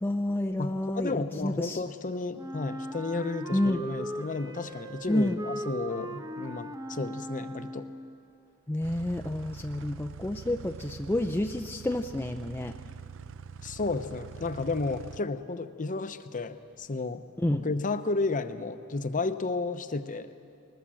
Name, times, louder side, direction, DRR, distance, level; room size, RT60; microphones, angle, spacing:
voice 1, 0.0-1.8 3.5-3.8 5.1-5.4 8.7-12.7 17.4-17.6, left 1 dB, 10° left, 5 dB, 0.4 m, -29 dB
voice 2, 0.6-7.9 13.6-17.2 17.5-20.3, left 3 dB, 35° left, 11 dB, 0.8 m, -32 dB
Wind instrument woodwind instrument, 2.4-8.1, right 1 dB, 15° right, 0.9 m, -39 dB
sound 1, 8.8-15.2, right 6 dB, 60° right, 0.5 m, -44 dB
21.0 x 20.0 x 7.6 m, 2.6 s
head